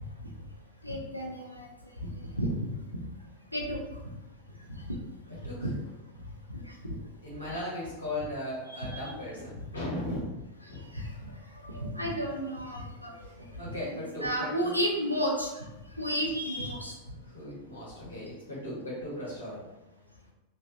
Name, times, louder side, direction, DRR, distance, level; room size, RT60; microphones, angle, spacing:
voice 1, 0.8-1.7 2.3-2.5 3.5-3.8 5.6-5.7 6.5-7.0 8.8-9.0 10.9-15.6 16.0-16.9, equal, 90° right, -1 dB, 0.5 m, -33 dB
voice 2, 5.3-5.7 7.2-10.4 10.7-10.9 13.2-14.7 17.2-19.7, left 1 dB, 80° left, -7 dB, 1.2 m, -37 dB
3.1 x 2.6 x 2.5 m, 0.99 s
figure-of-eight pair, 90°, 0 cm